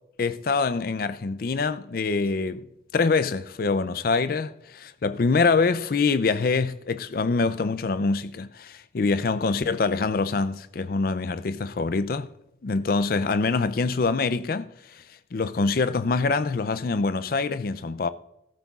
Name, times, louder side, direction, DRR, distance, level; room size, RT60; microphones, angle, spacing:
voice 1, 0.2-2.7 2.9-12.3 12.6-15.0 15.3-18.1, left 4 dB, 50° left, 0.4 m, -25 dB
16.0 x 13.5 x 2.4 m
head